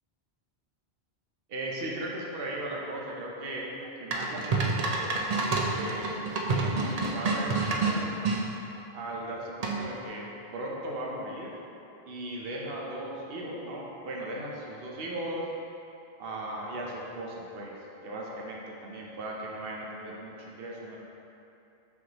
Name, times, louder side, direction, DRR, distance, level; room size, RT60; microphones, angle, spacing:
voice 1, 1.5-5.2 5.7-6.2 6.5-8.1 8.9-10.3 10.5-11.5 12.1-15.5 16.2-17.7 18.0-21.0, right 1 dB, 65° right, -3 dB, 1.0 m, -37 dB
sound 1, 4.1-8.4 9.6-10.0, right 3 dB, 45° right, 0.6 m, -28 dB
6.0 x 5.5 x 3.0 m, 2.9 s
omnidirectional pair, 1.1 m